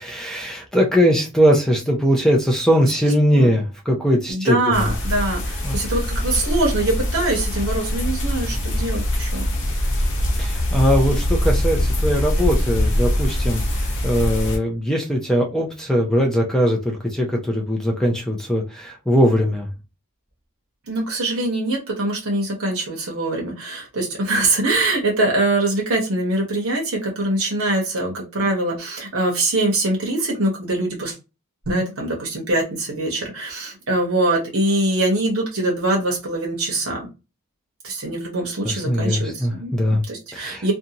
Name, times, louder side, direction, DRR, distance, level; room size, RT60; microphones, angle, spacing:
voice 1, 0.0-4.9 5.6-5.8 10.4-19.7 38.7-40.0 40.3-40.7, equal, 5° left, 1 dB, 0.4 m, -20 dB
voice 2, 4.3-9.5 20.9-31.1 31.7-37.1 37.8-40.7, right 2 dB, 65° right, -1 dB, 0.9 m, -23 dB
sound 1, 4.7-14.6, left 1 dB, 55° left, 0.7 m, -23 dB
2.6 x 2.3 x 2.8 m, 0.27 s
head